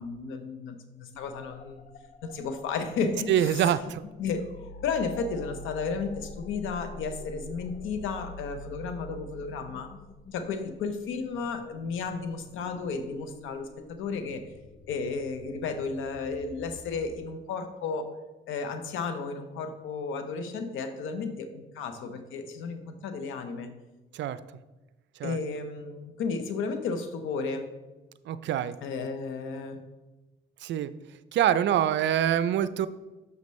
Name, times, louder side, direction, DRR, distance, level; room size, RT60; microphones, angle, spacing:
voice 1, 0.0-1.8 2.2-3.7 4.2-4.5 4.8-9.9 10.3-14.4 14.9-18.1 18.5-23.7 25.2-27.7 28.8-29.8, left 4 dB, 90° left, 8 dB, 0.8 m, -33 dB
sound 1, 1.1-17.2, left 2 dB, 40° left, 0.6 m, -47 dB
voice 2, 3.3-4.0 24.1-24.4 25.2-25.4 28.3-28.8 30.6-30.9 31.3-32.9, right 10 dB, 65° right, 14 dB, 0.4 m, -25 dB
6.9 x 6.6 x 3.1 m, 1.1 s
cardioid pair, 90°, 20 cm